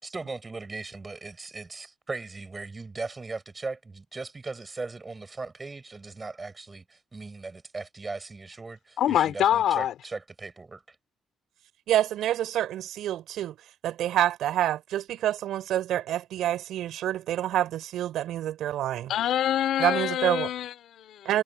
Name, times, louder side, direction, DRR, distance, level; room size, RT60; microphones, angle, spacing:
voice 1, 0.0-11.0, right 3 dB, 25° right, 7.4 m, -38 dB
voice 2, 9.0-10.0 19.1-21.4, left 11 dB, 75° left, 3.6 m, -25 dB
voice 3, 11.9-13.5 13.8-19.1 19.8-20.5 21.2-21.4, right 12 dB, 80° right, 4.4 m, -27 dB
cardioid pair, 90°, 0 cm